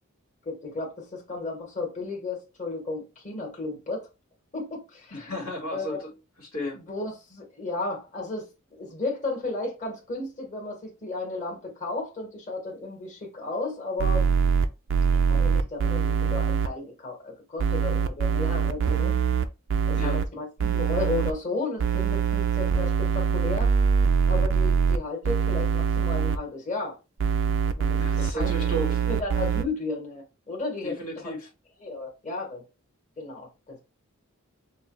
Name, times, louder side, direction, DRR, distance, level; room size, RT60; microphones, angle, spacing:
voice 1, 0.4-4.1 4.5-5.3 5.7-6.0 6.7-14.3 15.3-19.2 19.9-23.7 24.3-27.0 27.6-28.5 29.1-31.3 31.8-32.6 33.2-33.8, left 3 dB, 35° left, 1.7 m, -34 dB
voice 2, 5.1-6.8 20.0-20.2 28.0-29.0 30.8-31.5, equal, 80° left, 1.7 m, -34 dB
sound 1, 14.0-16.7 17.6-20.3 20.6-21.3 21.8-25.0 25.2-26.4 27.2-29.6, right 6 dB, 60° right, 0.4 m, -23 dB
6.2 x 2.3 x 3.1 m
head